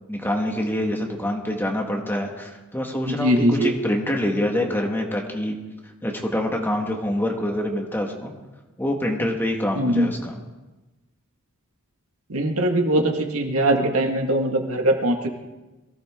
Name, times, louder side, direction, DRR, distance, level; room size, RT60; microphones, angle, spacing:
voice 1, 0.1-5.5 6.0-8.3 8.8-10.4, left 1 dB, 10° left, 1 dB, 1.6 m, -26 dB
voice 2, 3.0-3.7 9.8-10.1 12.3-15.3, right 1 dB, 70° right, 3 dB, 1.9 m, -21 dB
22.5 x 16.0 x 3.7 m, 1.1 s
head